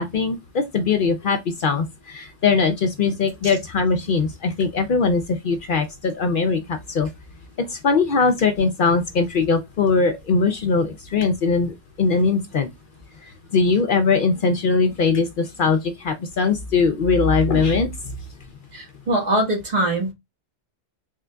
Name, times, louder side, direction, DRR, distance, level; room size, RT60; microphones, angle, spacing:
voice 1, 0.0-7.1 7.6-12.7 13.5-17.9, left 4 dB, 60° left, 0.6 m, -21 dB
voice 2, 18.7-20.1, right 1 dB, 35° right, 1.6 m, -22 dB
3.6 x 3.6 x 2.2 m
omnidirectional pair, 1.2 m